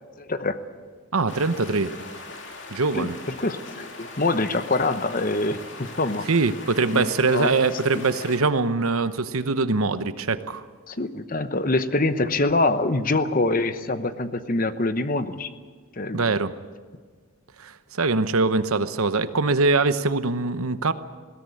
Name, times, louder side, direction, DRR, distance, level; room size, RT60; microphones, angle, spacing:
voice 1, 0.2-0.6 2.9-3.1 3.4-6.3 6.9-7.5 10.9-15.5 16.0-16.2, left 2 dB, 40° left, 11 dB, 1.0 m, -25 dB
voice 2, 1.1-2.0 2.7-3.1 6.3-10.6 16.1-16.5 17.6-20.9, right 3 dB, 80° right, 12 dB, 1.0 m, -23 dB
sound 1, 1.3-8.4, left 3 dB, 55° left, 2.6 m, -40 dB
20.5 x 17.0 x 8.5 m, 1.5 s
head